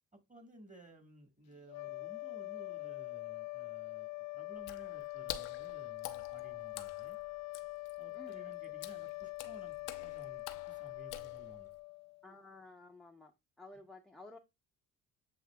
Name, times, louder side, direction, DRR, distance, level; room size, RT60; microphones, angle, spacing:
voice 1, 0.3-7.2 8.0-11.7, right 1 dB, 20° right, 1.6 m, -57 dB
sound 1, 1.6-12.3, left 21 dB, 45° left, 0.5 m, -44 dB
Water / Splash splatter, 4.6-11.8, left 12 dB, 85° left, 0.7 m, -49 dB
voice 2, 12.2-13.3 13.6-14.4, left 2 dB, ahead, 0.7 m, -53 dB
7.8 x 2.7 x 2.3 m
supercardioid pair, 65°, 38 cm